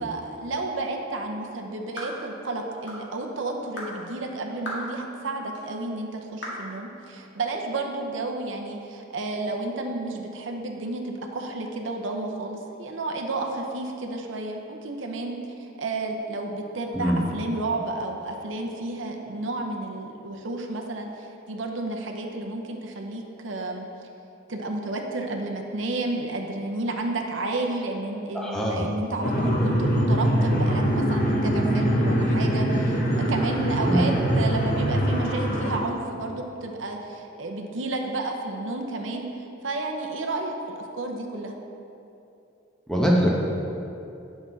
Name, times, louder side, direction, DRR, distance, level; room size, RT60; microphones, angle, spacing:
voice 1, 0.0-23.9 24.5-39.3 39.6-41.5, right 2 dB, 80° right, 2 dB, 0.8 m, -31 dB
sound 1, 2.0-2.2 2.9-3.1 3.8-3.9 4.6-4.9 5.5-5.6 6.4-6.6, equal, 65° left, 1.8 m, -35 dB
voice 2, 28.3-28.9 33.9-34.1 42.9-43.3, equal, 5° left, -3 dB, 0.9 m, -22 dB
sound 2, 29.2-35.8, equal, 45° left, 1.0 m, -23 dB
8.4 x 6.1 x 4.0 m, 2.8 s
head